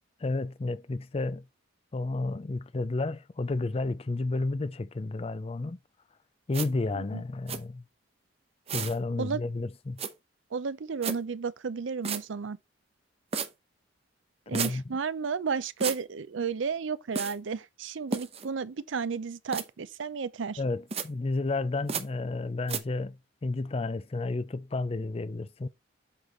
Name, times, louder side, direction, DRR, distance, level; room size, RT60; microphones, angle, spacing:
voice 1, 0.2-1.5 1.9-5.8 6.5-7.8 8.7-10.0 14.5-15.0 20.6-25.7, left 3 dB, 30° left, 0.4 m, -31 dB
sound 1, 6.5-6.7 7.5-7.6 8.7-9.0 10.0-10.1 11.0-11.2 12.0-12.2 13.3-13.5 14.5-14.7 15.8-16.0 17.1-17.3 18.1-18.4 19.5-19.6 20.9-21.1 21.9-22.0 22.7-22.8, right 5 dB, 30° right, 0.8 m, -32 dB
voice 2, 10.5-12.6 14.5-20.6, right 5 dB, 75° right, 0.5 m, -32 dB
7.9 x 4.0 x 4.3 m
head